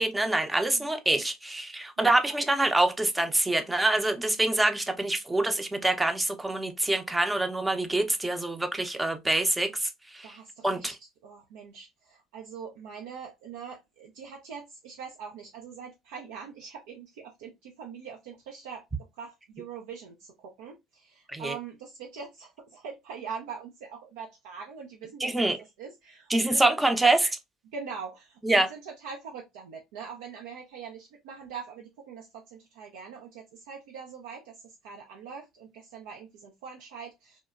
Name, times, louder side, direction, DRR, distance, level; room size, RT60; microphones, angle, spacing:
voice 1, 0.0-10.3 10.6-10.9 21.3-21.5 25.2-25.6 26.3-27.3 28.4-28.7, right 2 dB, 15° right, 0.6 m, -25 dB
voice 2, 2.0-2.4 10.2-11.0 11.2-18.8 19.1-27.0 27.7-37.4, right 6 dB, 80° right, 0.4 m, -43 dB
2.9 x 2.1 x 2.3 m
supercardioid pair, 80°, 0 cm